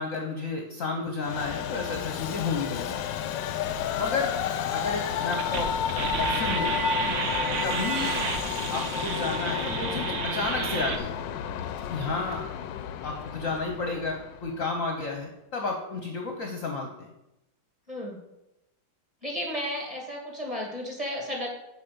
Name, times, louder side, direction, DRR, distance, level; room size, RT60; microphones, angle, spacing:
voice 1, 0.0-3.0 4.0-4.4 4.7-5.8 6.2-7.2 7.6-8.2 8.7-11.1 11.9-12.4 13.0-17.1, left 3 dB, 50° left, 2 dB, 1.0 m, -32 dB
Train, 1.2-14.7, left 8 dB, 75° left, 1.1 m, -31 dB
sound 1, 5.3-11.0, right 5 dB, 60° right, 0.8 m, -31 dB
voice 2, 17.9-18.2 19.2-21.5, equal, 15° right, -1 dB, 2.2 m, -33 dB
7.4 x 5.2 x 6.8 m, 0.91 s
omnidirectional pair, 2.3 m